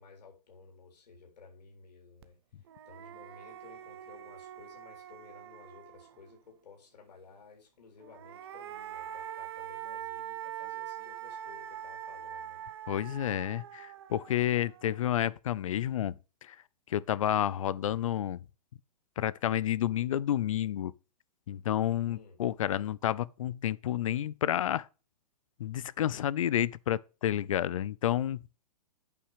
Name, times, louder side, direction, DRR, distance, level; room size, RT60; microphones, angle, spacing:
voice 1, 0.0-2.4 2.9-12.6 22.1-22.4, left 5 dB, 85° left, 3.7 m, -55 dB
sound 1, 2.2-2.3 2.7-6.3 8.0-15.3, right 11 dB, 40° right, 0.7 m, -43 dB
voice 2, 12.9-16.6 16.9-18.4 19.2-20.9 21.5-24.9 25.6-28.4, left 11 dB, 55° left, 0.5 m, -30 dB
8.5 x 5.7 x 4.9 m
hypercardioid pair, 175°, 20 cm